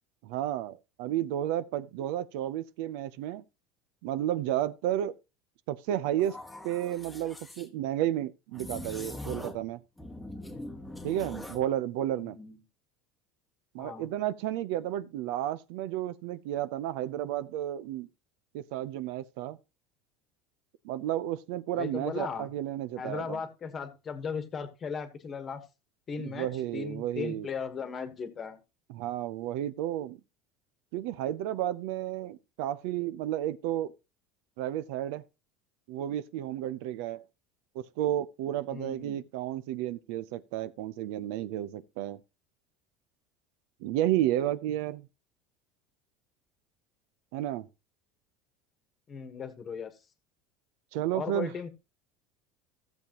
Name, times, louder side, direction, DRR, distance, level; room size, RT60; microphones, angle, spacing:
voice 1, 0.2-3.4 4.0-5.1 5.7-6.4 6.6-9.8 11.0-12.4 13.7-18.1 18.5-19.6 20.8-23.4 26.2-27.5 28.9-30.2 30.9-33.9 34.6-35.2 35.9-37.2 37.7-42.2 43.8-45.1 47.3-47.7 50.9-51.5, right 12 dB, 70° right, 0.5 m, -32 dB
sound 1, 6.2-7.7 8.5-9.7 10.0-11.7, left 1 dB, 5° left, 1.1 m, -42 dB
voice 2, 12.2-12.6 13.8-14.1 21.7-22.5 23.0-25.6 26.1-26.5 26.7-28.6 38.7-39.2 49.1-49.9 51.1-51.7, left 6 dB, 25° left, 1.3 m, -37 dB
15.5 x 7.0 x 3.0 m
cardioid pair, 160°, 0 cm